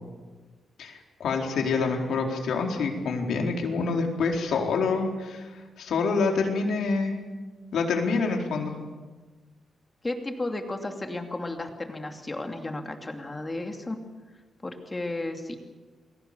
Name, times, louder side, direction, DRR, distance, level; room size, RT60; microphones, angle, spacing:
voice 1, 0.8-7.2 7.7-8.8, left 4 dB, 85° left, 2 dB, 4.3 m, -27 dB
voice 2, 10.0-14.0 14.6-15.6, left 2 dB, 20° left, 4 dB, 2.7 m, -33 dB
29.5 x 22.0 x 7.0 m, 1.3 s
wide cardioid pair, 150°, 0 cm